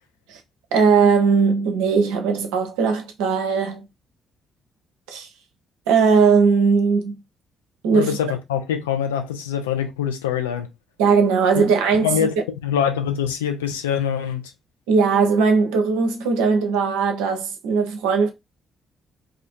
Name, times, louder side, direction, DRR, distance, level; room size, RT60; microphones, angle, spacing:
voice 1, 0.7-3.9 5.1-5.3 5.9-7.1 7.8-8.2 11.0-12.3 14.9-18.3, right 5 dB, 70° right, 0.5 m, -19 dB
voice 2, 7.9-10.7 11.6-11.7 12.0-12.3 12.6-14.5, left 8 dB, 80° left, 0.3 m, -24 dB
2.5 x 2.4 x 2.5 m
figure-of-eight pair, 40°, 0 cm